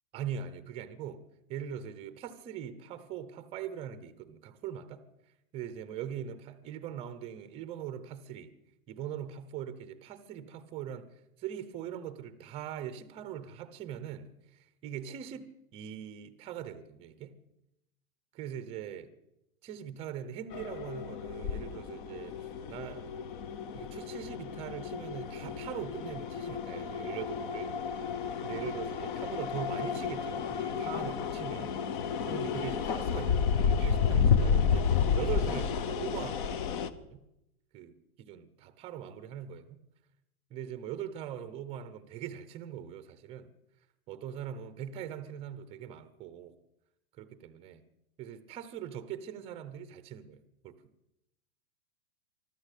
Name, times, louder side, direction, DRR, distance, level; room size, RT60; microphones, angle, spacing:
voice 1, 0.1-1.2 1.5-5.0 5.5-8.5 8.9-11.1 11.4-17.3 18.3-19.1 19.6-22.4 22.7-23.2 23.7-27.8 28.4-31.7 32.2-37.2 37.7-39.8 40.5-43.5 44.1-46.5 47.2-47.8 48.2-50.7, right 9 dB, 15° right, 0.8 m, -41 dB
sound 1, 20.5-36.9, left 6 dB, 35° left, 1.0 m, -31 dB
24.5 x 13.0 x 8.3 m
supercardioid pair, 170°, 43 cm